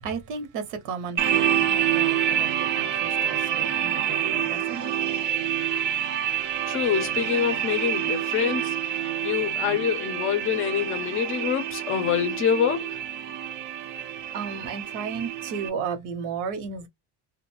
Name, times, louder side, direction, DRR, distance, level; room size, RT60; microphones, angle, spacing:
voice 1, 0.0-4.9 13.9-14.1 14.3-16.9, right 6 dB, 80° right, 1.0 m, -34 dB
sound 1, 1.2-15.7, right 10 dB, 45° right, 0.5 m, -27 dB
voice 2, 6.7-8.8 9.2-12.9, left 8 dB, 30° left, 0.5 m, -26 dB
2.4 x 2.2 x 2.9 m
cardioid pair, 175°, 43 cm